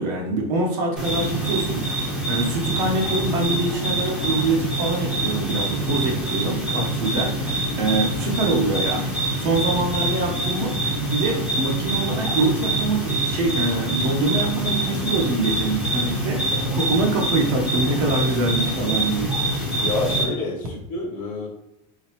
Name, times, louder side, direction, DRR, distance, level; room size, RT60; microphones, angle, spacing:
voice 1, 0.0-1.8 2.3-9.0 9.4-10.7 11.1-19.3, right 2 dB, 50° right, 1 dB, 1.0 m, -24 dB
sound 1, 1.0-20.2, right 1 dB, 5° right, 0.7 m, -25 dB
voice 2, 19.8-21.5, left 2 dB, 35° left, -5 dB, 0.9 m, -28 dB
3.9 x 3.7 x 3.0 m, 0.86 s
supercardioid pair, 165°, 20 cm